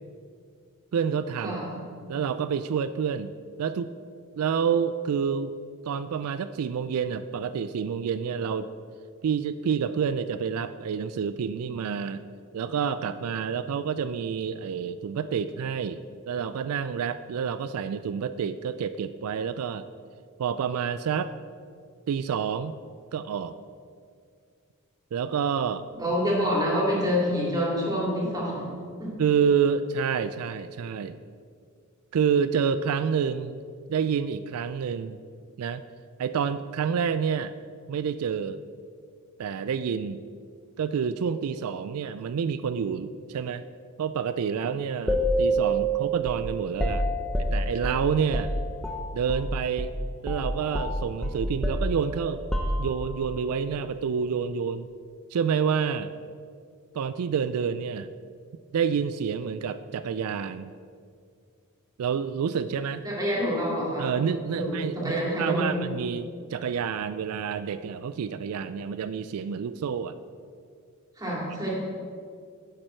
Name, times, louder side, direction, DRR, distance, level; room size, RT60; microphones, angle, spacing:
voice 1, 0.9-1.6 2.1-3.3 3.6-3.9 4.4-5.5 5.8-8.7 9.2-12.2 12.5-19.9 20.4-21.3 22.1-22.7 23.1-23.6 25.1-25.9 29.2-31.2 32.1-33.6 33.9-35.2 35.6-35.8 36.2-37.5 37.9-38.6 39.4-40.2 40.8-43.6 44.0-47.0 47.4-48.5 49.1-49.9 50.2-52.4 52.8-54.9 55.3-56.1 56.9-58.1 58.7-60.7 62.0-63.0 64.0-70.1, right 7 dB, 85° right, 12 dB, 0.4 m, -28 dB
voice 2, 1.4-1.8 26.0-28.7 29.0-29.1 63.0-64.1 64.5-65.8 71.2-71.7, equal, 15° right, -4 dB, 2.7 m, -27 dB
sound 1, 45.1-49.5 49.8-50.0 50.3-53.2, right 1 dB, ahead, 0.8 m, -28 dB
10.5 x 7.6 x 4.4 m, 2.2 s
head